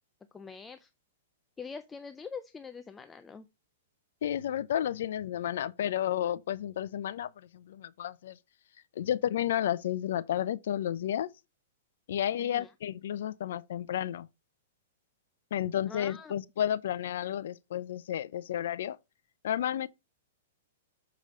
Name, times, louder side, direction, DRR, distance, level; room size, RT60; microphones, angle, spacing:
voice 1, 0.3-0.9 1.6-3.5 12.4-12.7 15.9-16.3, left 5 dB, 10° left, 0.5 m, -44 dB
voice 2, 4.2-8.4 9.0-11.3 12.1-14.3 15.5-19.0 19.4-19.9, left 10 dB, 70° left, 0.6 m, -32 dB
6.8 x 5.1 x 3.7 m
hypercardioid pair, 145°, 0 cm